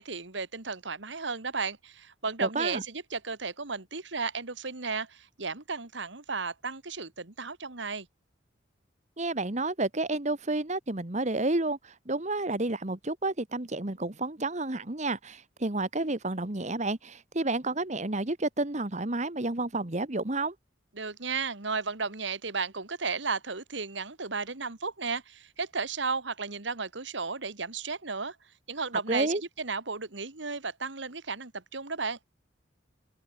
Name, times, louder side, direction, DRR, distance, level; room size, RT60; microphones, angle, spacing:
voice 1, 0.0-8.1 21.0-28.4 28.7-32.2, right 4 dB, 75° right, 2.2 m, -34 dB
voice 2, 2.4-2.8 9.2-20.5 29.1-29.4, right 2 dB, 40° right, 1.5 m, -30 dB
open air
head